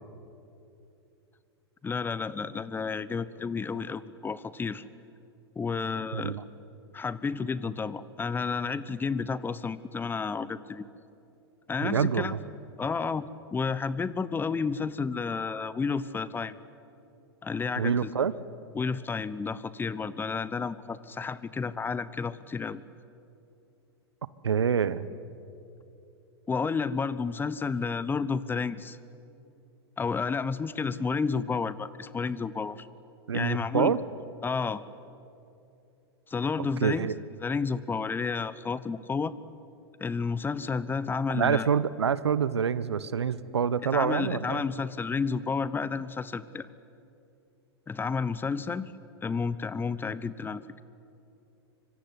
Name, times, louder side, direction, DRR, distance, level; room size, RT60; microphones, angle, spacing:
voice 1, 1.8-4.8 5.6-6.4 6.9-10.9 11.7-12.3 12.8-13.2 13.5-16.6 17.4-18.1 18.7-22.8 26.5-29.0 30.0-32.9 33.3-34.0 34.4-34.8 36.3-37.1 37.4-39.3 40.0-41.7 43.9-46.7 47.9-48.9 49.2-50.8, left 5 dB, 15° left, 17 dB, 1.0 m, -31 dB
voice 2, 6.1-6.4 11.8-12.4 17.8-18.3 24.4-25.0 33.3-34.0 36.8-37.1 41.3-44.6, right 7 dB, 85° right, 17 dB, 1.0 m, -26 dB
25.0 x 24.5 x 9.7 m, 2.7 s
hypercardioid pair, 100°, 14 cm